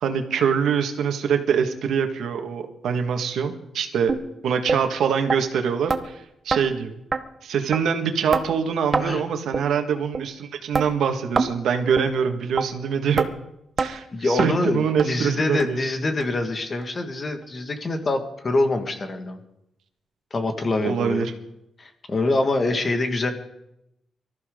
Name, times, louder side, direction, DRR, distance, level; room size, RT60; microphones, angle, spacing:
voice 1, 0.0-4.1 4.4-7.0 7.4-13.3 13.8-15.8 20.8-21.3, right 7 dB, 80° right, 6 dB, 1.7 m, -24 dB
sound 1, 4.1-4.2 4.7-4.8 5.3-5.4 5.9-6.0 6.5-6.6 7.1-7.2 7.7-7.8 8.3-8.5 8.9-9.1 9.5-9.7 10.1-10.3 10.7-10.9 11.4-11.5 12.0-12.1 12.6-12.7 13.2-13.3 13.8-13.9 14.4-14.5 15.0-15.1 15.6-15.7 16.2-16.3 16.8-16.9, right 4 dB, 25° right, 0.8 m, -24 dB
voice 2, 14.1-19.4 20.3-21.3 21.8-23.3, left 2 dB, 30° left, 6 dB, 1.8 m, -25 dB
24.5 x 14.0 x 3.8 m, 0.83 s
wide cardioid pair, 170°, 0 cm